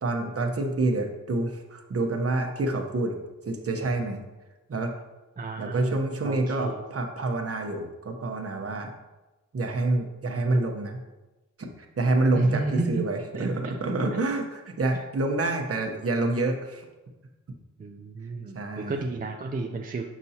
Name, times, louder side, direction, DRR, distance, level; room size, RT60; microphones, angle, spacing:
voice 1, 0.0-3.2 3.5-4.2 4.7-4.9 5.6-8.9 9.5-11.0 11.6-16.9 18.5-19.0, right 2 dB, 50° right, 3 dB, 0.9 m, -27 dB
voice 2, 5.4-6.0 6.2-6.8 12.3-13.1 13.3-13.7 14.1-14.2 14.9-15.0 17.8-20.0, right 3 dB, 30° right, 1 dB, 0.5 m, -32 dB
6.7 x 6.1 x 2.8 m, 1.1 s
wide cardioid pair, 110°, 31 cm